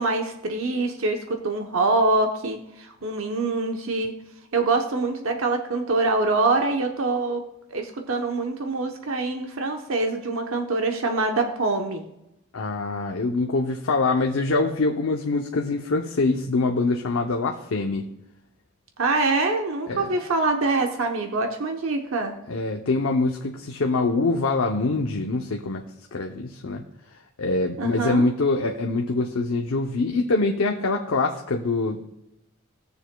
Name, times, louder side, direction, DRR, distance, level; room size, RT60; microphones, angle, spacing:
voice 1, 0.0-4.1 4.5-7.4 7.7-12.0 19.0-22.3 27.8-28.2, right 3 dB, 75° right, 4 dB, 0.9 m, -24 dB
voice 2, 12.5-18.0 19.9-20.1 22.5-25.8 26.1-26.8 27.4-32.0, left 3 dB, 75° left, 2 dB, 0.7 m, -24 dB
19.0 x 6.9 x 2.2 m, 0.86 s
head